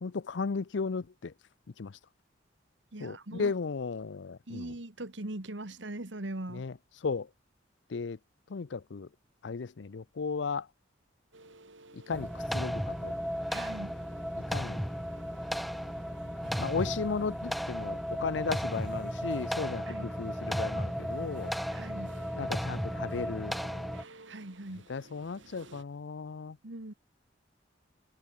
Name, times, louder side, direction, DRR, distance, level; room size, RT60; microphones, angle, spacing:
voice 1, 0.0-1.3 1.8-2.0 3.0-4.7 6.5-6.7 7.0-7.3 7.9-8.2 8.5-9.1 9.4-10.7 12.1-13.1 14.5-14.8 16.6-21.5 22.4-23.9 24.9-26.6, left 4 dB, 65° left, 0.5 m, -35 dB
voice 2, 2.9-3.5 4.5-6.7 13.5-14.0 19.9-20.1 21.7-22.1 24.3-24.9 26.6-26.9, right 1 dB, 70° right, 2.0 m, -41 dB
sound 1, 11.3-25.8, right 2 dB, 90° right, 6.8 m, -54 dB
sound 2, 12.1-24.0, equal, ahead, 0.5 m, -35 dB
head